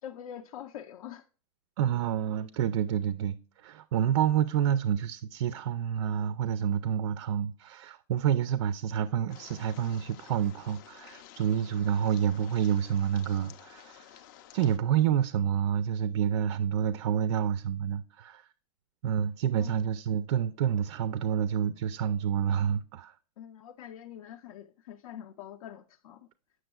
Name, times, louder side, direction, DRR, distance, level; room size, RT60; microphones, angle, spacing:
voice 1, 0.0-1.3 19.6-19.8 23.4-26.3, left 10 dB, 80° left, 0.5 m, -44 dB
voice 2, 1.8-14.1 14.5-18.5 19.0-23.2, right 9 dB, 55° right, 0.4 m, -28 dB
sound 1, 9.3-14.8, left 11 dB, 35° left, 0.4 m, -52 dB
7.8 x 6.1 x 2.2 m
supercardioid pair, 170°, 19 cm